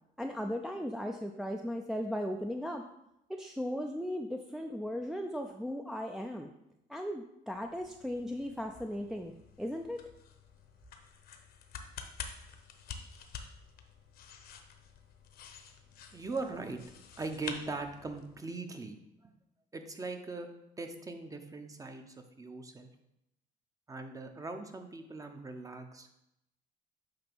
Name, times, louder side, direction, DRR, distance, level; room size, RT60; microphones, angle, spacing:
voice 1, 0.2-2.8 3.3-6.5 6.9-9.3 9.6-10.0, equal, ahead, 3 dB, 0.4 m, -37 dB
sound 1, 7.6-18.4, left 7 dB, 65° left, 0.9 m, -49 dB
voice 2, 16.1-16.9 17.2-19.0 19.2-19.3 19.7-20.5 20.8-22.9 23.9-26.2, right 3 dB, 20° right, 6 dB, 0.8 m, -40 dB
8.7 x 2.9 x 6.1 m, 0.83 s
cardioid pair, 110°, 17 cm